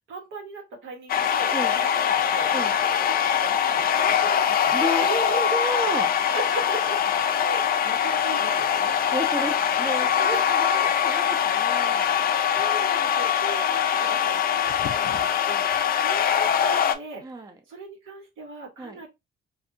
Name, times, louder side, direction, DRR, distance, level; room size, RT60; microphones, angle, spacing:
voice 1, 0.1-4.8 6.3-9.0 10.3-10.5 11.9-19.1, right 3 dB, 85° right, 1.3 m, -40 dB
sound 1, 1.1-17.0, left 8 dB, 50° left, 0.4 m, -23 dB
voice 2, 4.7-6.1 8.8-12.2 17.2-17.6 18.8-19.0, right 1 dB, 20° right, 0.6 m, -31 dB
2.6 x 2.6 x 2.7 m
cardioid pair, 90°, 20 cm